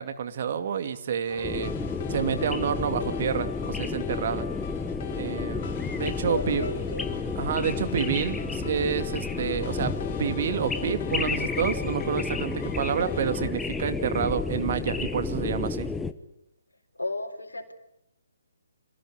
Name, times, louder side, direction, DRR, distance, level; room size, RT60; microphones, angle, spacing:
voice 1, 0.0-1.7 2.1-4.5 5.1-6.7 7.3-9.9 10.2-15.9, right 7 dB, 40° right, 9 dB, 2.4 m, -29 dB
sound 1, 1.3-13.5, left 8 dB, 35° left, 2.5 m, -40 dB
sound 2, 1.4-16.1, left 4 dB, 5° left, 1.1 m, -31 dB
voice 2, 6.3-7.1 16.9-17.7, left 2 dB, 75° left, 2 dB, 4.0 m, -33 dB
27.0 x 17.0 x 9.7 m, 0.81 s
figure-of-eight pair, 135°, 0 cm